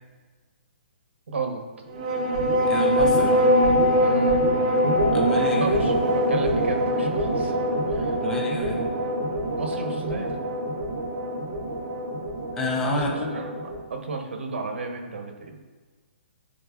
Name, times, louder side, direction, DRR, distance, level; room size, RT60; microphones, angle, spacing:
voice 1, 1.3-1.6 4.0-4.4 5.6-8.2 9.6-10.5 12.9-13.0 13.3-13.5 13.9-15.6, right 4 dB, 80° right, 4 dB, 1.0 m, -33 dB
sound 1, 1.9-13.8, equal, 40° right, 0.7 m, -23 dB
voice 2, 2.7-3.3 5.1-5.8 8.2-8.8 12.5-13.4, equal, 10° left, 0 dB, 0.5 m, -28 dB
10.5 x 3.8 x 2.4 m, 1.4 s
hypercardioid pair, 170°, 6 cm